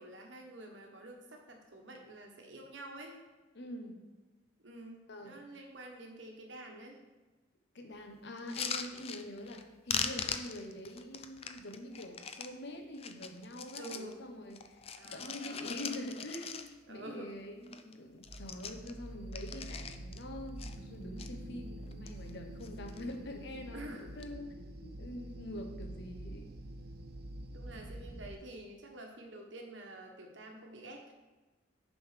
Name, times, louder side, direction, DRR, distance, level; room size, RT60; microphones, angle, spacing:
voice 1, 0.0-3.2 4.6-7.0 13.7-14.2 15.0-15.7 16.9-17.3 23.7-24.0 27.5-31.1, right 1 dB, 75° right, 2 dB, 1.3 m, -48 dB
voice 2, 3.5-4.0 5.1-5.4 7.7-26.5, left 1 dB, 65° left, 4 dB, 1.1 m, -45 dB
sound 1, 8.4-9.6 9.9-12.5 12.9-14.1 14.5-17.0 17.3-17.4 17.6-17.9 18.2-20.2 20.6-21.3 21.8-22.3 22.6-23.2 24.0-24.3, left 7 dB, 30° left, 0.4 m, -41 dB
sound 2, 18.3-28.3, right 1 dB, 55° right, 0.7 m, -46 dB
7.0 x 5.4 x 5.0 m, 1.2 s
head